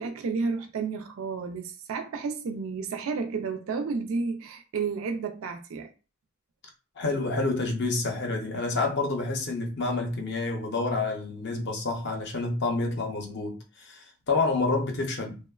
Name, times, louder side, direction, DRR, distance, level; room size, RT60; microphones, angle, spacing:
voice 1, 0.0-5.9, right 4 dB, 70° right, 0.3 m, -31 dB
voice 2, 7.0-15.5, left 3 dB, 50° left, 0.5 m, -28 dB
2.9 x 2.0 x 2.3 m
head